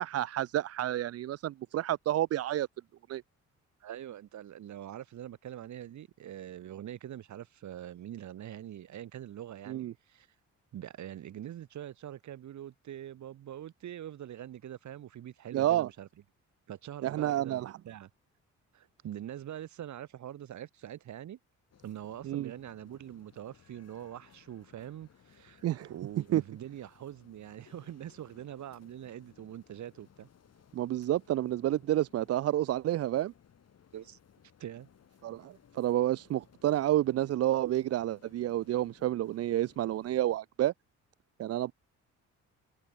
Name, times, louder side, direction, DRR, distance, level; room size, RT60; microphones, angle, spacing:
voice 1, 0.0-2.7 3.1-3.2 9.7-9.9 15.5-15.9 17.0-17.7 22.2-22.5 25.6-25.9 26.3-26.4 30.7-33.3 35.2-40.7 41.4-41.7, right 13 dB, 55° right, 0.5 m, -29 dB
voice 2, 3.8-10.3 10.7-16.1 16.7-18.1 18.7-21.4 21.8-30.3 33.9-34.2 34.6-34.9, right 11 dB, 70° right, 4.0 m, -44 dB
sound 1, 21.7-40.4, left 8 dB, 55° left, 7.9 m, -62 dB
cardioid pair, 90°, 30 cm